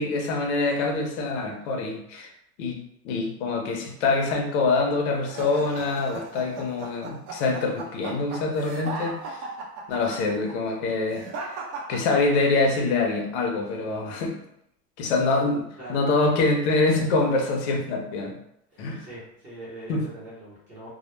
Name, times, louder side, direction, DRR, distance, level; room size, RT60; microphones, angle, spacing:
voice 1, 0.0-2.3 2.6-2.8 3.0-9.4 9.9-11.3 11.9-14.4 15.0-15.6 15.9-18.4 18.8-19.0 19.9-20.0, left 3 dB, 45° left, 2 dB, 0.5 m, -25 dB
sound 1, 5.3-12.7, right 3 dB, 85° right, 0.8 m, -36 dB
voice 2, 18.7-20.9, right 1 dB, 25° right, -7 dB, 0.7 m, -42 dB
2.1 x 2.1 x 3.0 m, 0.73 s
supercardioid pair, 170°, 49 cm